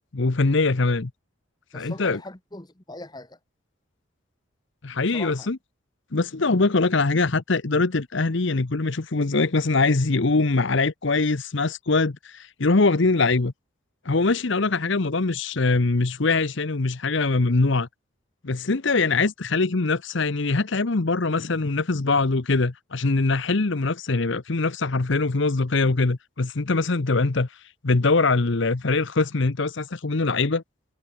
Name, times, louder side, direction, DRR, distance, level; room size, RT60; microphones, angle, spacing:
voice 1, 0.1-1.1 1.7-2.2 4.8-5.6 6.1-13.5 14.0-17.9 18.4-27.5 27.8-30.6, left 3 dB, 60° left, 0.9 m, -22 dB
voice 2, 1.7-3.4 5.1-5.5, left 2 dB, 20° left, 1.3 m, -40 dB
head